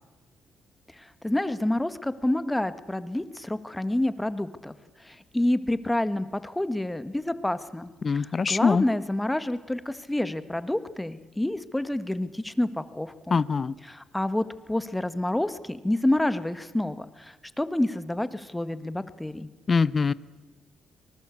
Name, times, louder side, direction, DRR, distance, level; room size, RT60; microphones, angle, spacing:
voice 1, 1.0-4.7 5.0-13.4 13.8-19.5, left 1 dB, 10° left, 13 dB, 1.4 m, -28 dB
voice 2, 8.0-8.8 13.3-13.7 19.7-20.1, left 5 dB, 35° left, 19 dB, 0.7 m, -23 dB
25.0 x 20.0 x 8.4 m, 1.2 s
cardioid pair, 90°, 0 cm